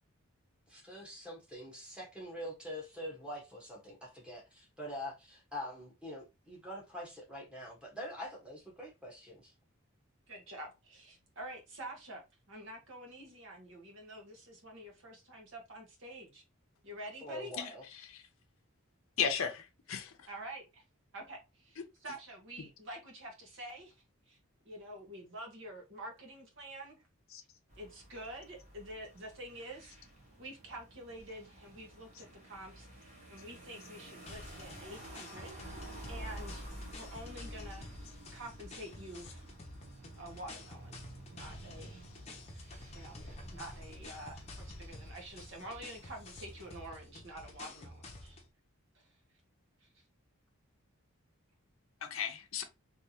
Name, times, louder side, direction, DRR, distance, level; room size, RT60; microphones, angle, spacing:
voice 1, 0.7-9.5 17.2-17.8, equal, 5° right, 1.2 m, -45 dB
voice 2, 10.3-12.2 12.5-16.4 16.8-17.5 20.3-20.8 21.1-24.4 24.6-27.0 27.8-29.9 30.4-35.8 36.1-36.7 36.9-39.4 40.1-41.0 41.3-42.0 42.9-43.2 43.5-48.4 48.9-49.1 49.8-50.0, right 1 dB, 55° right, 1.2 m, -48 dB
voice 3, 17.6-18.2 19.2-20.3 22.6-22.7 27.3-27.4 52.0-52.6, left 7 dB, 70° left, 0.6 m, -36 dB
sound 1, 27.7-46.9, right 1 dB, 30° right, 1.1 m, -51 dB
sound 2, 34.3-48.5, left 2 dB, 30° left, 0.7 m, -50 dB
3.3 x 2.8 x 2.8 m
head